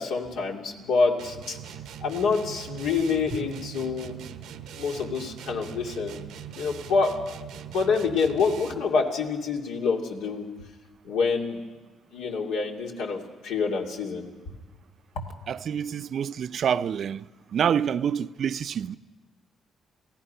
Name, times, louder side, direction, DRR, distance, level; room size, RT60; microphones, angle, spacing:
voice 1, 0.0-1.6 2.0-4.3 4.7-6.2 6.5-7.1 7.7-10.5 11.0-11.6 12.1-14.2 15.2-15.3, left 4 dB, 90° left, 2.6 m, -27 dB
sound 1, 1.2-8.9, right 9 dB, 90° right, 1.0 m, -41 dB
voice 2, 15.5-17.2 17.5-18.9, right 8 dB, 60° right, 0.5 m, -27 dB
28.0 x 17.0 x 5.6 m
cardioid pair, 90°, 0 cm